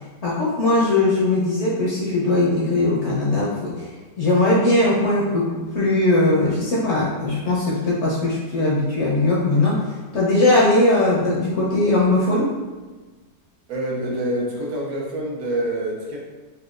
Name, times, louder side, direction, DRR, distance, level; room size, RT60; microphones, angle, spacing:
voice 1, 0.2-3.9 4.2-9.8 10.1-12.5, left 2 dB, 60° left, -6 dB, 0.8 m, -19 dB
voice 2, 13.7-16.2, right 1 dB, 70° right, -2 dB, 1.1 m, -26 dB
4.0 x 2.3 x 2.3 m, 1.3 s
omnidirectional pair, 1.7 m